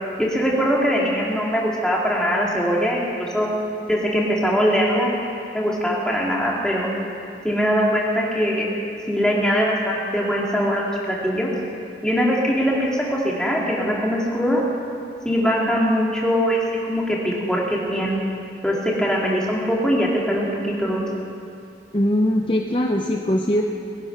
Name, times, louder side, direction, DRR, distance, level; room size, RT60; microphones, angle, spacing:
voice 1, 0.2-3.5 3.9-6.9 7.4-8.7 9.1-11.5 12.0-14.6 15.2-16.6 16.9-18.1 18.6-21.0, equal, 5° left, -4 dB, 2.3 m, -22 dB
voice 2, 21.9-23.6, left 1 dB, 30° left, 2 dB, 0.7 m, -21 dB
20.5 x 10.5 x 5.9 m, 2.5 s
head